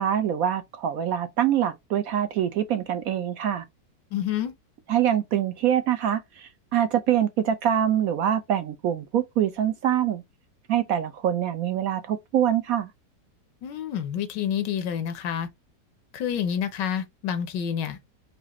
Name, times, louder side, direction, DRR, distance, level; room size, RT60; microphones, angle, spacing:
voice 1, 0.0-3.6 4.9-10.2 10.7-12.9, right 10 dB, 70° right, 0.8 m, -24 dB
voice 2, 4.1-4.5 13.6-15.5 16.1-18.0, left 9 dB, 80° left, 1.3 m, -28 dB
4.9 x 2.5 x 2.9 m
omnidirectional pair, 1.9 m